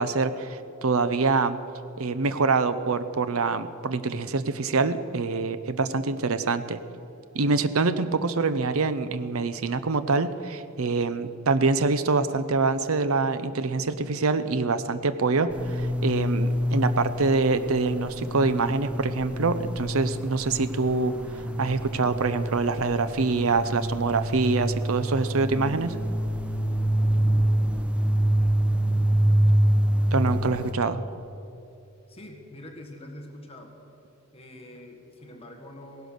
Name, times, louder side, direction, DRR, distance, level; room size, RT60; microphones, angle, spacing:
voice 1, 0.0-1.6 2.0-6.8 7.3-21.1 21.6-25.9 30.1-31.0, right 4 dB, 80° right, 12 dB, 0.7 m, -25 dB
sound 1, 15.5-30.7, equal, 5° right, 0.9 m, -26 dB
voice 2, 32.1-33.8 34.3-36.1, left 1 dB, 30° left, 3 dB, 1.7 m, -44 dB
18.0 x 11.5 x 6.6 m, 2.8 s
head